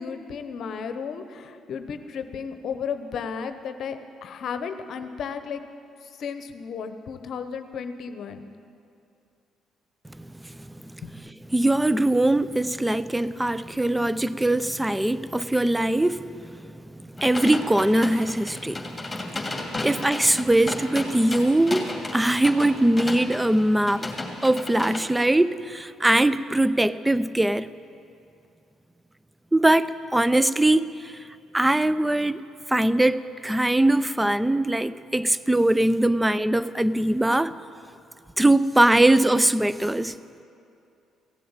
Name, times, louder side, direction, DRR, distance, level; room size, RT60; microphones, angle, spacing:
voice 1, 0.0-5.6 6.0-8.5 11.0-11.1, left 6 dB, 60° left, 0.8 m, -34 dB
voice 2, 10.1-11.0 11.5-24.1 24.4-27.7 29.5-31.2 31.5-32.4 32.7-37.5 38.4-40.1, right 1 dB, 10° right, 0.5 m, -22 dB
sound 1, 17.2-25.1, left 2 dB, 15° left, 2.6 m, -34 dB
15.5 x 7.7 x 8.8 m
supercardioid pair, 60°, 0 cm